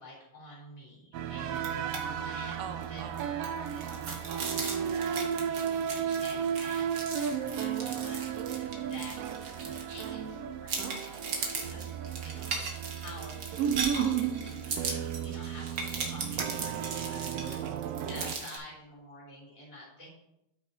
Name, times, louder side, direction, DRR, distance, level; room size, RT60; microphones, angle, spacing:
voice 1, 0.0-8.2 8.5-9.3 9.6-11.9 12.2-12.7 13.0-17.8 18.1-20.1, left 1 dB, 10° left, -8 dB, 3.3 m, -49 dB
sound 1, 1.1-18.4, right 8 dB, 80° right, 1.5 m, -34 dB
sound 2, 1.6-2.0 2.3-2.4 2.8-10.3 10.7-18.6, right 4 dB, 50° right, 1.5 m, -38 dB
13.5 x 6.0 x 2.8 m, 0.86 s
omnidirectional pair, 3.4 m